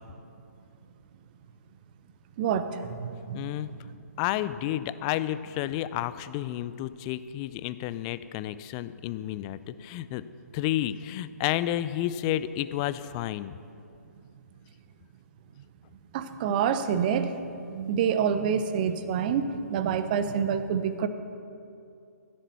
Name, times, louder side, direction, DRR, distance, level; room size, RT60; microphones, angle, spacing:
voice 1, 2.4-3.7 16.1-21.1, right 7 dB, 30° right, 11 dB, 0.7 m, -27 dB
voice 2, 3.3-3.7 4.2-10.2 10.5-13.6, left 13 dB, 20° left, 14 dB, 0.3 m, -31 dB
15.0 x 7.4 x 6.8 m, 2.6 s
figure-of-eight pair, 135°, 9 cm